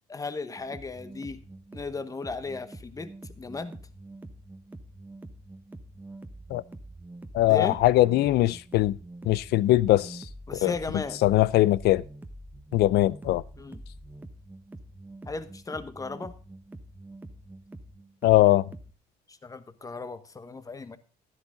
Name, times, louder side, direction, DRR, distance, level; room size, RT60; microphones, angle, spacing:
voice 1, 0.1-1.4 1.7-3.8 7.5-7.8 10.5-11.2 13.6-13.8 15.3-16.3 19.3-21.0, left 4 dB, 20° left, 1.2 m, -36 dB
sound 1, 0.6-18.9, right 1 dB, 10° right, 1.1 m, -45 dB
voice 2, 7.3-8.9 9.2-10.2 10.6-10.7 11.2-12.0 12.7-13.4 18.2-18.6, left 16 dB, 70° left, 0.5 m, -21 dB
12.5 x 11.0 x 3.8 m
cardioid pair, 110°, 17 cm